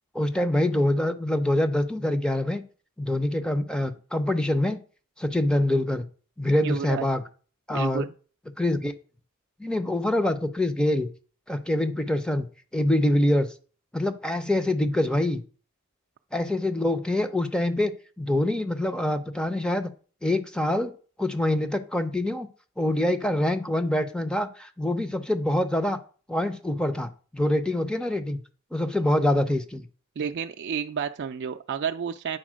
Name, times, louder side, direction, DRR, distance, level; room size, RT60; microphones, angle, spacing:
voice 1, 0.1-2.6 3.0-4.8 5.2-6.1 6.4-7.2 7.7-8.0 8.6-8.9 9.6-11.1 11.5-12.5 12.7-13.5 13.9-15.4 16.3-17.9 18.2-19.9 20.2-20.9 21.2-22.5 22.8-26.0 26.3-28.4 28.7-29.8, left 1 dB, 5° left, 8 dB, 0.6 m, -25 dB
voice 2, 6.6-7.1 7.7-8.1 30.2-32.4, right 7 dB, 50° right, 5 dB, 0.4 m, -31 dB
8.9 x 4.1 x 6.2 m, 0.40 s
head